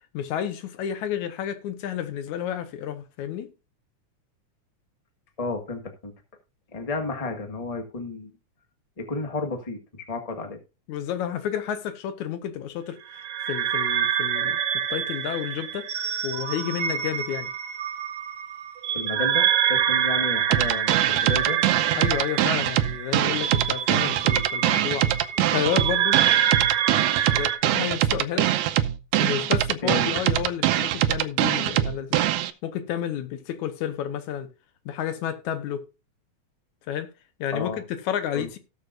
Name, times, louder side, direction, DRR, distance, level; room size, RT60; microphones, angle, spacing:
voice 1, 0.1-3.5 10.9-15.9 16.2-17.5 22.0-25.1 25.5-26.2 27.3-28.5 29.2-32.2 32.6-34.5 34.9-35.8 36.9-37.1 37.4-38.6, left 9 dB, 75° left, 2.3 m, -31 dB
voice 2, 5.4-6.1 6.7-8.3 9.0-10.6 18.9-21.6 29.8-30.1 37.5-37.8 38.3-38.5, left 3 dB, 20° left, 0.9 m, -32 dB
sound 1, 13.1-27.6, right 10 dB, 60° right, 2.0 m, -26 dB
sound 2, 20.5-32.5, right 12 dB, 80° right, 2.0 m, -23 dB
18.0 x 6.6 x 2.5 m
omnidirectional pair, 3.5 m